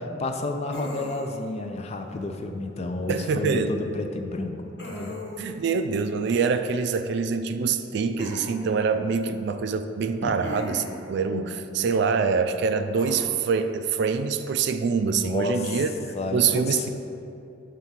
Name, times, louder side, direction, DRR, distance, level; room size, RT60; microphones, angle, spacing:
voice 1, 0.0-5.2 10.2-10.4 11.3-11.4 15.1-15.8 16.1-16.9, left 2 dB, 35° left, 5 dB, 0.4 m, -31 dB
sound 1, 0.7-1.5 4.8-5.6 8.2-8.6 10.4-11.1 13.0-13.2, left 1 dB, 60° left, 1.3 m, -37 dB
voice 2, 3.1-3.8 5.4-16.9, right 5 dB, 60° right, 9 dB, 0.3 m, -25 dB
7.4 x 3.4 x 5.7 m, 2.7 s
head